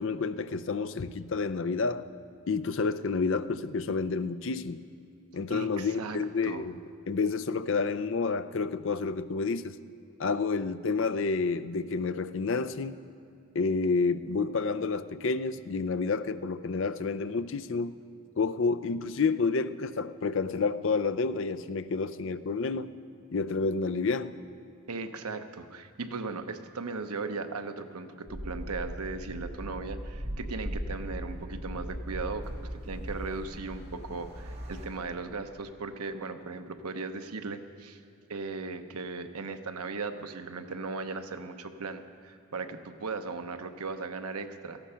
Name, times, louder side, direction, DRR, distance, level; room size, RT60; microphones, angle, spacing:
voice 1, 0.0-2.0 2.5-4.8 5.3-6.8 7.1-9.8 10.2-13.0 13.5-18.0 18.4-22.9 23.3-24.3, left 4 dB, 60° left, 13 dB, 0.5 m, -29 dB
voice 2, 5.5-6.2 6.4-6.6 24.9-38.0 38.3-44.8, right 4 dB, 85° right, 8 dB, 0.9 m, -37 dB
sound 1, 28.3-34.9, equal, 45° right, 2.7 m, -38 dB
17.5 x 14.5 x 5.7 m, 2.5 s
head